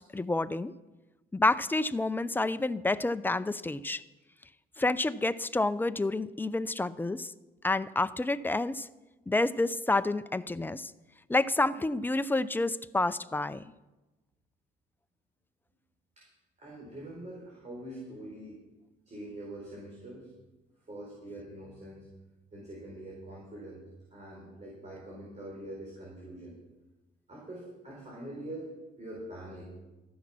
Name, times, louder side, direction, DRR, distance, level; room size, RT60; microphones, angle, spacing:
voice 1, 0.1-0.7 1.3-4.0 4.8-7.3 7.6-8.9 9.3-10.9 11.3-13.6, left 2 dB, 10° left, 14 dB, 0.5 m, -29 dB
voice 2, 16.6-18.6 19.1-20.3 20.9-22.1 22.5-26.5 27.3-28.7 29.0-29.6, right 1 dB, 35° right, -3 dB, 4.7 m, -44 dB
14.0 x 10.5 x 6.0 m, 1.1 s
cardioid pair, 90°, 20 cm